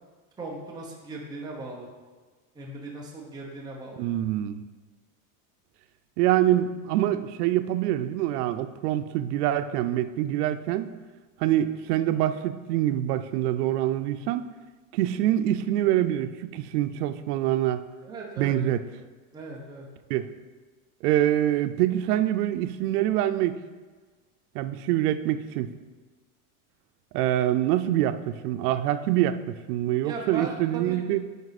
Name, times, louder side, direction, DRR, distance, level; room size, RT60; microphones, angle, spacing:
voice 1, 0.4-1.9 2.5-4.1 18.0-18.6 19.3-19.9 30.0-31.0, right 3 dB, 10° right, -3 dB, 1.0 m, -38 dB
voice 2, 4.0-4.6 6.2-10.9 11.4-14.5 14.9-17.8 18.4-18.8 20.1-20.3 21.0-23.6 24.5-25.7 27.1-31.2, right 12 dB, 90° right, 11 dB, 0.7 m, -25 dB
9.4 x 5.3 x 4.1 m, 1.4 s
supercardioid pair, 155°, 45 cm